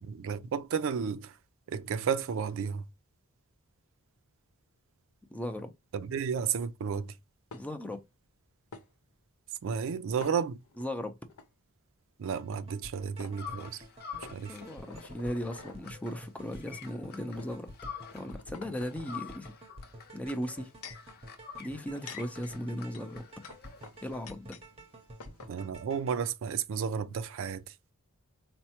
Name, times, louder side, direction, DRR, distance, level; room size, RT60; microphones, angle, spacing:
voice 1, 0.0-1.4 1.7-2.9 5.9-7.1 9.6-10.6 12.2-13.8 14.3-14.6 25.5-27.7, right 7 dB, 60° right, 0.4 m, -32 dB
voice 2, 5.3-5.7 7.5-8.0 10.8-11.1 14.5-17.7 18.1-19.5 20.1-20.7 21.6-23.2 24.0-24.6, equal, 5° left, 0.5 m, -37 dB
sound 1, 7.5-8.0 8.7-8.9 10.2-10.9 11.3-11.5 12.8-12.9 13.2-13.4 14.2-15.8 16.6-16.7 17.4-17.5 18.0-19.2 20.3-21.1 21.8-24.7 24.9-25.0 25.2-25.6, left 4 dB, 85° left, 0.6 m, -49 dB
sound 2, 12.2-26.2, right 1 dB, 30° right, 0.7 m, -51 dB
sound 3, 13.4-18.4 18.7-24.3, left 7 dB, 45° left, 0.6 m, -48 dB
4.4 x 2.1 x 2.7 m
head